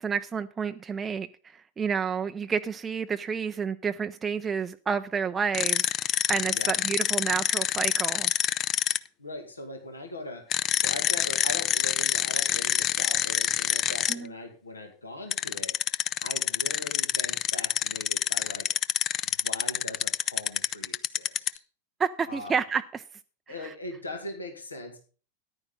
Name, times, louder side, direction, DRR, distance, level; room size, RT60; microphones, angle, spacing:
voice 1, 0.0-8.3 14.1-14.3 22.0-23.0, right 6 dB, 20° right, 8 dB, 0.5 m, -30 dB
sound 1, 5.5-9.0 10.5-14.1 15.3-21.6, left 11 dB, 30° left, 0.5 m, -26 dB
voice 2, 9.2-10.4 10.8-15.8 16.2-18.7 19.2-21.6 22.3-22.6 23.5-25.0, left 2 dB, 80° left, 4 dB, 2.2 m, -40 dB
14.0 x 10.5 x 3.9 m, 0.38 s
figure-of-eight pair, 90°, 0 cm